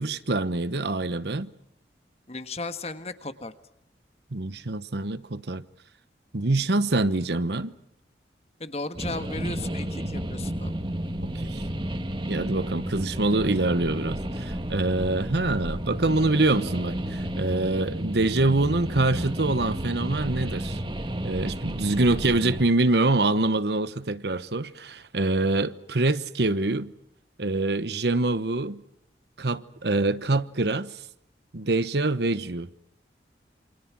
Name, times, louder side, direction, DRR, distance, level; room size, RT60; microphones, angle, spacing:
voice 1, 0.0-1.5 4.3-5.6 6.3-7.7 11.3-11.7 12.3-20.8 21.2-26.9 27.4-28.8 29.4-31.0 31.5-32.7, right 2 dB, 70° right, 1.1 m, -25 dB
voice 2, 2.3-3.5 8.6-10.7, left 3 dB, 35° left, 1.5 m, -35 dB
sound 1, 8.9-22.6, right 1 dB, 25° right, 1.8 m, -32 dB
28.0 x 26.0 x 6.1 m
head